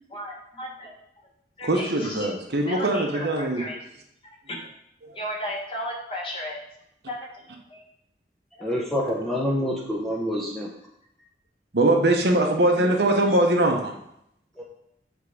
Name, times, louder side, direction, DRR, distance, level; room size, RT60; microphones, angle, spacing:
voice 1, 0.1-0.9 1.6-1.9 2.2-2.3 2.7-3.8 4.5-4.6 5.2-6.6 7.1-7.2 8.6-8.7 12.8-12.9, left 1 dB, 30° left, -2 dB, 1.4 m, -34 dB
voice 2, 1.6-3.6 11.7-13.9, right 1 dB, 75° right, 2 dB, 1.0 m, -21 dB
voice 3, 8.6-10.7 14.6-14.7, equal, ahead, -4 dB, 0.7 m, -27 dB
6.9 x 3.6 x 4.9 m, 0.76 s
head